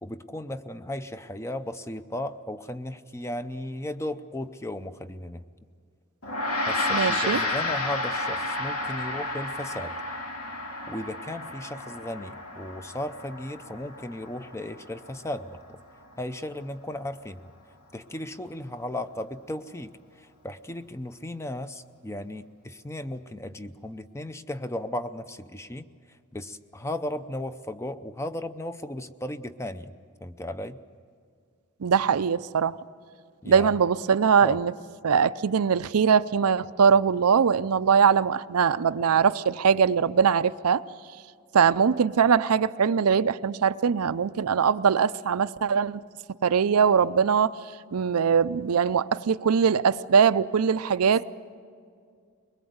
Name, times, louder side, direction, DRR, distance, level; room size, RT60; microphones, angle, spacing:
voice 1, 0.0-5.4 6.7-10.0 10.9-15.8 16.2-17.5 17.9-25.9 26.3-29.9 30.2-30.8 33.4-33.8 34.4-34.6, left 1 dB, 10° left, 0.6 m, -35 dB
Gong, 6.2-15.8, left 2 dB, 80° left, 2.4 m, -32 dB
voice 2, 6.9-7.4 31.8-32.8 33.5-34.7 35.0-40.8 41.5-46.0 46.4-47.6 47.9-51.2, right 6 dB, 85° right, 0.5 m, -22 dB
22.5 x 20.5 x 8.0 m
head